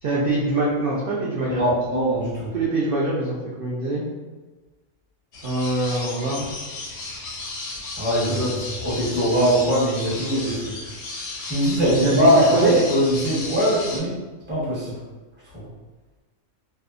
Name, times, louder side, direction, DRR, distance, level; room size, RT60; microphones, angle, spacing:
voice 1, 0.0-1.6 2.5-4.0 5.4-6.5 8.3-8.5 11.9-12.7, right 2 dB, 60° right, -6 dB, 0.6 m, -24 dB
voice 2, 1.5-2.5 8.0-10.8 11.4-14.2 14.5-15.0 15.5-15.7, equal, 10° right, -9 dB, 0.8 m, -21 dB
sound 1, 5.3-14.0, left 3 dB, 90° left, 1.0 m, -34 dB
2.7 x 2.1 x 2.4 m, 1.3 s
omnidirectional pair, 1.3 m